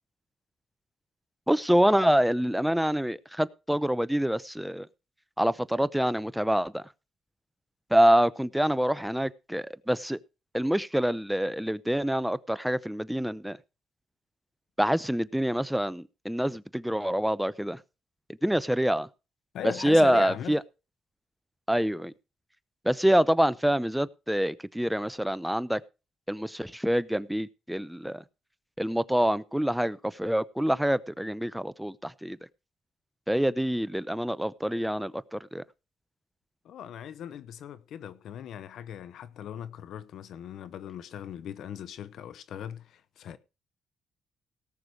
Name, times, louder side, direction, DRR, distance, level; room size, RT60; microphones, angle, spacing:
voice 1, 1.5-4.9 5.4-6.8 7.9-10.2 10.5-13.6 14.8-17.8 18.4-19.1 19.8-20.6 21.7-22.1 22.8-25.8 26.3-28.2 28.8-32.4 33.3-35.6, equal, 5° right, 0.7 m, -26 dB
voice 2, 19.5-20.6 36.6-43.4, left 9 dB, 75° left, 0.8 m, -39 dB
18.0 x 6.8 x 4.7 m
cardioid pair, 90°, 0 cm